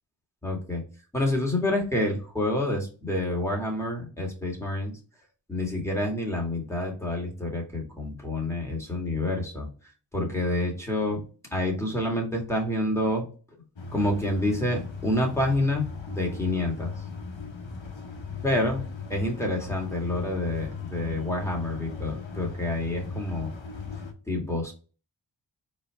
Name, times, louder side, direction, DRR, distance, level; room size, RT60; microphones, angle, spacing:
voice 1, 0.4-0.8 1.1-4.9 5.5-9.7 10.1-11.2 11.5-13.2 13.9-16.9 18.4-18.8 19.1-23.5 24.3-24.7, left 1 dB, 5° left, -1 dB, 1.9 m, -28 dB
sound 1, 13.8-24.1, left 5 dB, 75° left, 1.1 m, -38 dB
4.4 x 3.3 x 3.4 m, 0.35 s
wide cardioid pair, 70°, 46 cm